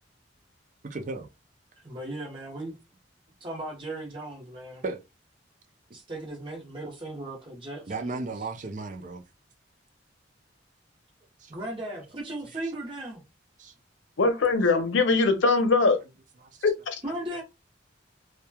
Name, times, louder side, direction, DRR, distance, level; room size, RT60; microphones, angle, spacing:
voice 1, 0.8-1.3 4.8-5.0 7.9-9.2 11.4-11.5 13.6-13.7 16.4-16.5, right 3 dB, 45° right, 0.5 m, -34 dB
voice 2, 1.8-2.8 3.4-4.8 5.9-8.2 11.5-13.2 17.0-17.4, right 1 dB, 30° right, 0.9 m, -37 dB
voice 3, 14.2-16.0 16.6-17.0, left 3 dB, 90° left, 0.6 m, -22 dB
2.9 x 2.2 x 2.2 m
head